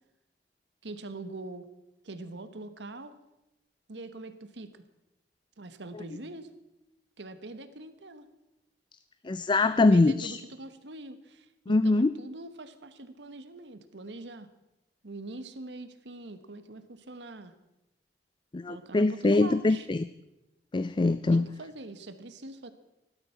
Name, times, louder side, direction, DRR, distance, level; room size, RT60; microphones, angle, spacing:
voice 1, 0.8-1.7 2.0-3.1 3.9-4.7 5.6-6.5 7.2-8.3 9.7-14.5 15.0-17.5 18.7-19.9 21.3-22.7, right 2 dB, 80° right, 11 dB, 1.2 m, -43 dB
voice 2, 9.2-10.4 11.7-12.1 18.5-20.0 20.7-21.4, left 2 dB, 25° left, 14 dB, 0.4 m, -23 dB
17.0 x 12.0 x 5.8 m, 0.97 s
head